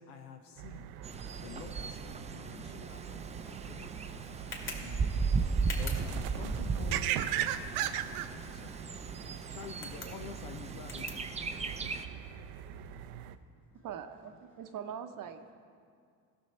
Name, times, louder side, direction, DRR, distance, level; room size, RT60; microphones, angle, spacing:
voice 1, 0.0-1.0 1.4-4.3 4.6-5.2 5.4-8.7 9.5-11.3, left 7 dB, 80° left, 5 dB, 0.8 m, -48 dB
sound 1, 0.6-13.4, right 11 dB, 80° right, 0.6 m, -40 dB
voice 2, 0.7-1.4 1.7-1.8 2.8-3.0 8.1-9.6 11.5-13.9 14.5-14.6, left 2 dB, 50° left, -3 dB, 2.9 m, -68 dB
Bird, 1.0-12.1, right 4 dB, 15° right, 0.5 m, -36 dB
Tick, 2.8-12.0, left 2 dB, 30° left, 2.3 m, -50 dB
voice 3, 13.7-15.6, right 8 dB, 45° right, 8 dB, 0.8 m, -42 dB
15.5 x 6.3 x 4.3 m, 2.2 s
hypercardioid pair, 80°, 43 cm